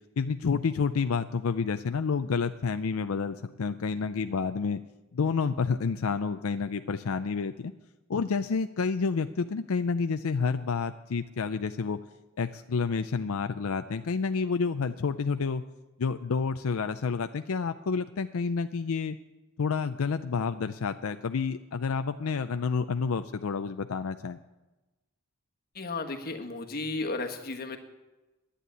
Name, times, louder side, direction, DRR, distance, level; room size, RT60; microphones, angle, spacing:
voice 1, 0.2-4.8 5.1-7.7 8.1-12.0 12.4-15.6 16.0-19.2 19.6-24.4, left 5 dB, 80° left, 9 dB, 0.5 m, -29 dB
voice 2, 25.7-27.8, left 3 dB, 45° left, 4 dB, 1.4 m, -34 dB
11.0 x 10.0 x 9.1 m, 1.1 s
head